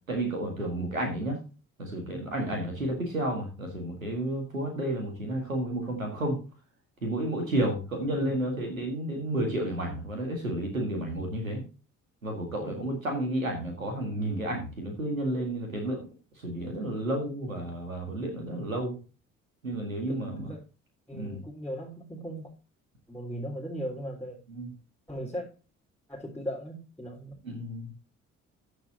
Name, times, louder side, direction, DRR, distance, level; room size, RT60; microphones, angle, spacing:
voice 1, 0.1-1.4 1.8-6.4 7.0-11.6 12.2-16.0 16.4-19.0 19.6-20.5 21.1-21.4 24.5-24.7 27.4-27.9, right 1 dB, 90° right, 2 dB, 2.1 m, -31 dB
voice 2, 2.8-3.1 8.1-8.4 12.6-12.9 17.5-17.8 20.1-20.6 21.1-22.5 23.1-24.4 25.1-25.5 26.1-27.3, equal, 5° left, -5 dB, 3.6 m, -38 dB
14.0 x 7.2 x 2.8 m, 0.33 s
figure-of-eight pair, 45°, 39 cm